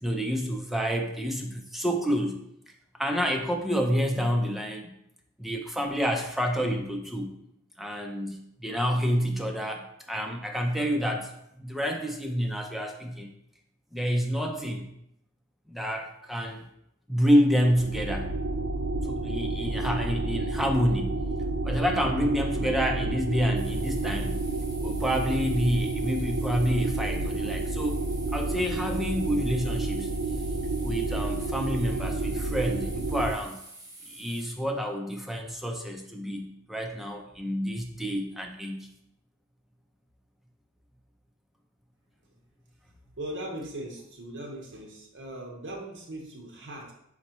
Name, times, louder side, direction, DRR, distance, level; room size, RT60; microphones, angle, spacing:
voice 1, 0.0-2.4 2.9-4.9 5.4-7.3 7.8-13.3 13.9-14.9 15.7-16.6 17.1-18.3 19.0-21.2 21.6-24.4 24.8-28.0 28.3-30.1 30.8-33.6 34.1-38.9, equal, ahead, 2 dB, 0.4 m, -28 dB
sound 1, 17.5-33.3, right 2 dB, 90° right, 0.5 m, -30 dB
sound 2, 23.5-34.5, right 2 dB, 15° right, 0.8 m, -48 dB
voice 2, 43.2-46.9, right 1 dB, 60° right, 0 dB, 0.9 m, -39 dB
4.2 x 4.2 x 3.0 m, 0.78 s
head